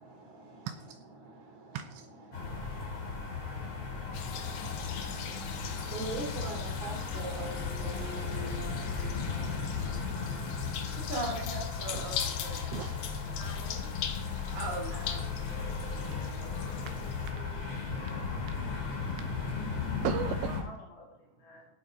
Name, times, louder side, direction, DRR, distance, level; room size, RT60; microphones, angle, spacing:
voice 1, 0.0-0.7 1.2-1.8 2.3-12.6 14.5-15.3 16.4-16.5, right 2 dB, 45° right, 1 dB, 3.5 m, -43 dB
voice 2, 0.6-1.0 1.7-2.1 8.8-9.6 10.8-11.3 11.9-12.1 12.7-13.4 16.1-20.7, right 9 dB, 80° right, 8 dB, 2.8 m, -42 dB
sound 1, 2.3-20.6, left 5 dB, 30° left, 3.2 m, -36 dB
sound 2, 4.1-17.3, left 9 dB, 75° left, 2.1 m, -42 dB
voice 3, 9.6-10.0 13.3-13.9 20.6-21.7, left 2 dB, 55° left, -2 dB, 3.8 m, -50 dB
17.0 x 7.9 x 5.1 m, 0.75 s
omnidirectional pair, 5.7 m